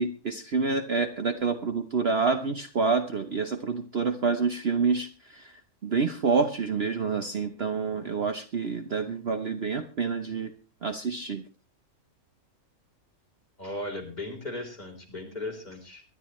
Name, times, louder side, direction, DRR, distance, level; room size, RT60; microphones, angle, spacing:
voice 1, 0.0-5.5 5.8-10.5 10.8-11.4, right 4 dB, 50° right, 8 dB, 1.0 m, -28 dB
voice 2, 13.6-16.0, left 2 dB, 30° left, 0 dB, 3.9 m, -37 dB
23.5 x 11.0 x 3.1 m, 0.33 s
omnidirectional pair, 1.5 m